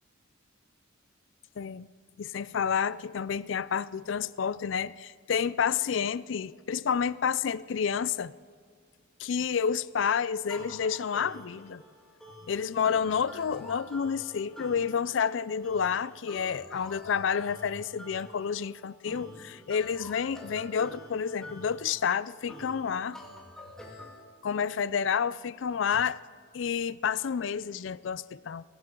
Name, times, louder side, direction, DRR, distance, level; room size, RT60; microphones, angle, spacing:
voice 1, 1.6-1.9 2.2-8.3 9.2-11.8 12.5-23.2 24.4-26.2 26.5-28.6, left 7 dB, 65° left, 0.4 m, -29 dB
sound 1, 10.5-24.2, left 1 dB, 5° left, 3.0 m, -47 dB
22.5 x 17.0 x 3.8 m
head